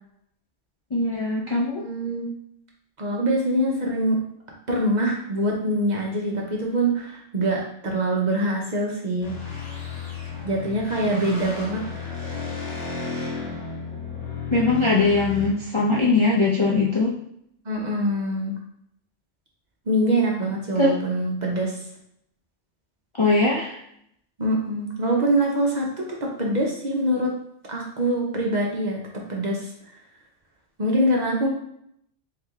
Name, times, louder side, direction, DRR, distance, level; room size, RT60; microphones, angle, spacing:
voice 1, 0.9-1.8 14.5-17.1 20.8-20.9 23.2-23.7 31.4-31.5, left 3 dB, 40° left, -4 dB, 0.4 m, -21 dB
voice 2, 1.8-2.3 3.0-4.2 4.7-9.4 10.4-11.8 17.6-18.5 19.9-21.8 24.4-27.3 27.7-29.0 29.3-29.7 30.8-31.5, right 1 dB, 45° right, -2 dB, 0.8 m, -24 dB
sound 1, 9.2-15.5, left 4 dB, 70° left, 1.7 m, -33 dB
3.3 x 3.3 x 3.5 m, 0.72 s
omnidirectional pair, 1.2 m